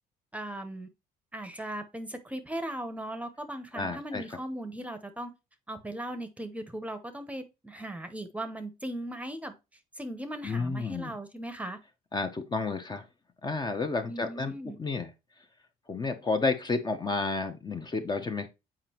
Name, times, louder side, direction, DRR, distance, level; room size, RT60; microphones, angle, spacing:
voice 1, 0.3-0.9 1.3-5.3 5.7-9.5 10.0-11.8 14.1-14.8, right 1 dB, 10° right, 0.9 m, -38 dB
voice 2, 3.7-4.2 10.4-11.1 12.1-13.0 13.4-15.1 15.9-18.5, left 3 dB, 25° left, 0.9 m, -31 dB
7.5 x 5.0 x 3.0 m
cardioid pair, 110°, 17 cm